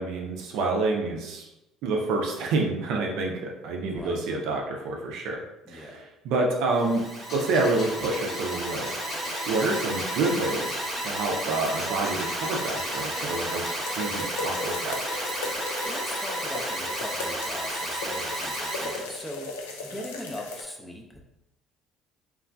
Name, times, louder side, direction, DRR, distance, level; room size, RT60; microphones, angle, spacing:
voice 1, 0.0-1.5 1.8-5.9 6.2-7.0 7.3-13.6 14.0-15.0, right 3 dB, 70° right, 0 dB, 0.5 m, -28 dB
voice 2, 3.8-4.2 5.7-6.0 15.8-21.2, left 1 dB, 15° left, 1 dB, 0.6 m, -40 dB
Alarm, 6.7-19.1, right 1 dB, 30° right, 0.9 m, -33 dB
sound 1, 7.3-17.9 18.2-18.4, left 2 dB, 50° left, 0.7 m, -40 dB
sound 2, 10.3-20.6, left 3 dB, 85° left, 0.3 m, -38 dB
3.0 x 2.4 x 2.3 m, 0.92 s
hypercardioid pair, 60°, 0 cm